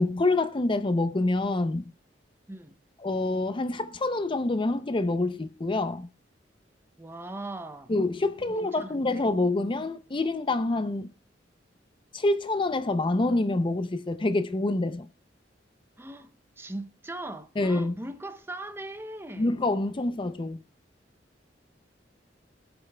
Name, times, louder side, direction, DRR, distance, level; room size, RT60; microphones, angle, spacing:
voice 1, 0.0-1.9 3.0-6.1 7.9-11.1 12.1-15.1 17.6-18.0 19.4-20.6, left 2 dB, 30° left, 0.5 m, -26 dB
voice 2, 7.0-7.9 8.4-9.3 16.0-19.5, right 1 dB, 15° right, 0.6 m, -40 dB
20.0 x 8.8 x 2.2 m
head